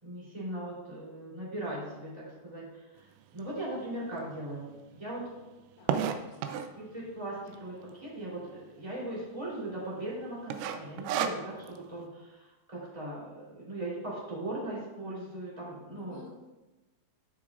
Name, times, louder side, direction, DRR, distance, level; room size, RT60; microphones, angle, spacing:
voice 1, 0.0-3.1 3.3-4.7 4.9-5.2 6.7-16.2, right 1 dB, 10° right, -7 dB, 2.1 m, -39 dB
sound 1, 3.4-3.5 4.1-4.2 4.3-4.4 4.7-6.8 7.5-7.9 8.2-8.3 8.5-8.6 9.2-9.5 9.8-10.1 10.5-11.8, right 8 dB, 90° right, 2.6 m, -32 dB
voice 2, 5.8-6.6 15.9-16.3, left 2 dB, 75° left, -4 dB, 4.7 m, -53 dB
17.0 x 6.0 x 2.5 m, 1.1 s
omnidirectional pair, 5.9 m